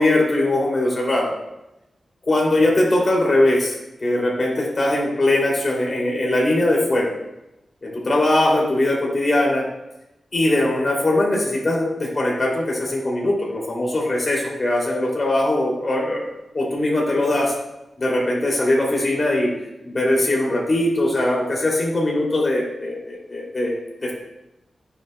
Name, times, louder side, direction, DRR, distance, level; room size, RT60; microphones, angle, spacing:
voice 1, 0.0-1.3 2.2-3.7 4.0-7.1 7.8-9.6 10.3-16.2 16.5-17.5 18.0-19.5 19.8-23.7 24.0-24.1, left 1 dB, 45° left, -2 dB, 2.6 m, -20 dB
14.0 x 6.6 x 2.2 m, 0.92 s
cardioid pair, 55°, 0 cm